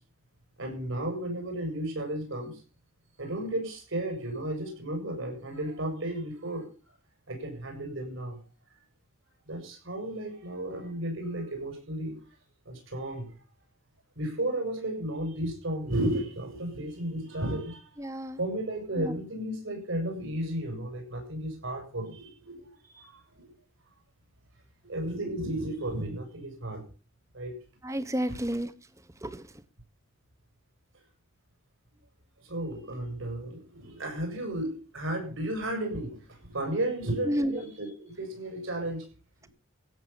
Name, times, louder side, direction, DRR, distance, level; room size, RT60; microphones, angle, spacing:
voice 1, 0.6-2.6 3.2-6.7 7.3-8.4 9.5-12.1 12.7-13.4 14.2-17.8 18.4-23.5 24.8-26.8 27.3-27.5 28.3-28.4 32.4-39.1, right 1 dB, 70° right, 2 dB, 6.9 m, -33 dB
voice 2, 18.0-18.4 19.0-19.2 27.8-28.7 29.2-29.5 37.3-37.6, equal, 15° right, 13 dB, 1.0 m, -30 dB
15.5 x 7.3 x 7.0 m, 0.36 s
head